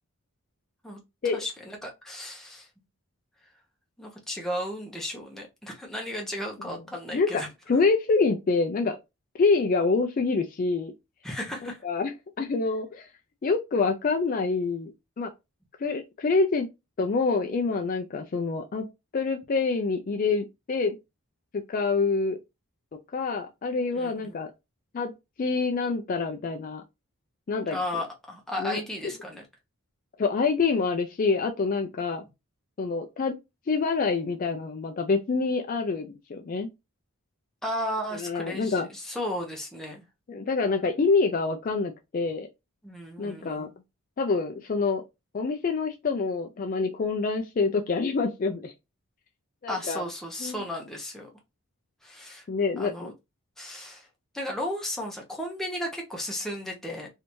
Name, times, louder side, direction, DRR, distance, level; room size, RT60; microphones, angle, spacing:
voice 1, 1.3-2.7 4.0-7.5 11.2-11.8 23.9-24.3 27.7-29.4 37.6-40.0 42.8-43.7 49.7-51.3 52.0-52.5 52.8-53.1 53.6-54.1 54.3-57.1, left 1 dB, ahead, 0.7 m, -34 dB
voice 2, 7.7-9.0 9.4-10.9 11.6-13.1 13.4-14.9 15.2-15.3 15.8-16.7 17.0-18.8 19.1-21.0 21.7-22.4 23.1-24.5 24.9-25.1 25.4-26.8 27.5-27.8 28.6-28.8 30.2-32.2 32.8-33.3 33.7-36.7 38.1-38.9 40.3-42.5 43.2-43.7 44.2-45.0 45.3-48.7 49.6-50.0 50.4-50.6 52.5-53.1, left 4 dB, 40° left, 0.3 m, -26 dB
3.2 x 2.6 x 3.0 m
head